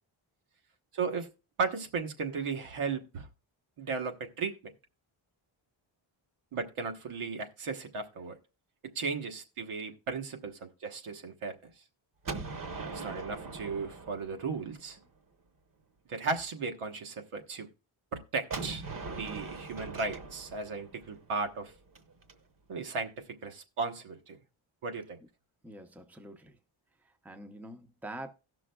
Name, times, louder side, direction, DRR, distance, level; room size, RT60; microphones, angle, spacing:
voice 1, 0.9-1.3 1.6-3.3 3.8-4.6 6.5-8.4 8.8-11.7 12.9-15.0 16.1-17.7 18.1-18.8 19.2-21.7 22.7-24.4 24.8-25.2, right 4 dB, 85° right, 1.2 m, -35 dB
Gunshot gunfire, 12.2-15.1 18.5-22.3, right 3 dB, 40° right, 0.9 m, -41 dB
voice 2, 25.6-26.6 27.0-28.3, right 1 dB, 5° right, 0.5 m, -45 dB
18.0 x 6.1 x 2.2 m
wide cardioid pair, 165°, 49 cm